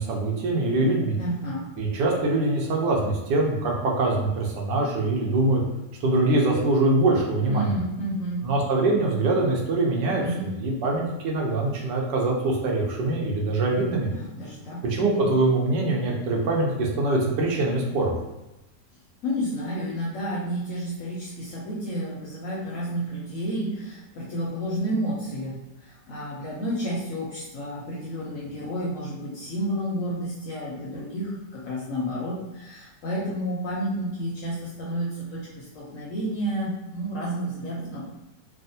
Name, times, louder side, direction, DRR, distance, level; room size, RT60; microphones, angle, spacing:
voice 1, 0.0-1.2 1.8-5.6 6.0-7.7 8.4-10.2 10.6-14.1 14.8-18.1, right 2 dB, 80° right, -1 dB, 1.3 m, -23 dB
voice 2, 1.2-1.6 7.5-8.4 10.2-10.5 14.1-14.8 19.2-25.5 25.8-38.0, equal, 65° left, -5 dB, 0.8 m, -31 dB
3.4 x 2.0 x 2.6 m, 0.98 s
omnidirectional pair, 1.8 m